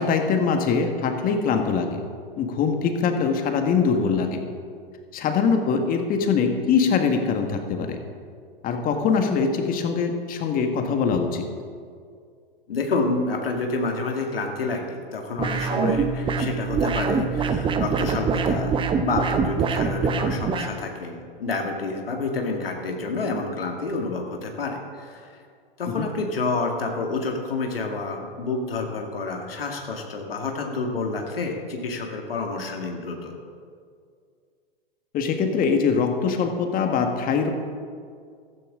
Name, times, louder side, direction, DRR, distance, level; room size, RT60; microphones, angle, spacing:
voice 1, 0.0-2.0 2.4-4.4 5.1-8.0 8.6-11.4 26.0-26.1 35.1-37.5, left 5 dB, 30° left, 5 dB, 1.6 m, -23 dB
voice 2, 12.7-25.3 25.8-33.4, left 3 dB, 80° left, 2 dB, 1.9 m, -29 dB
sound 1, 15.4-20.7, right 5 dB, 15° right, 0.8 m, -24 dB
15.0 x 14.0 x 3.7 m, 2.2 s
hypercardioid pair, 105°, 29 cm